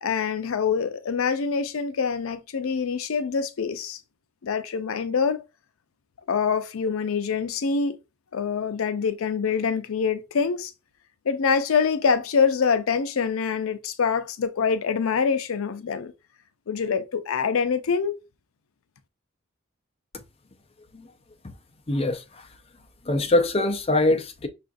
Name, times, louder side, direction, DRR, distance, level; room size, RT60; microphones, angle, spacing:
voice 1, 0.0-4.0 4.4-5.4 6.3-8.0 8.3-10.7 11.3-16.1 16.7-18.2, left 6 dB, 90° left, 0.5 m, -25 dB
voice 2, 21.9-22.5 23.1-24.5, left 2 dB, 30° left, 0.5 m, -23 dB
5.6 x 2.4 x 2.5 m
head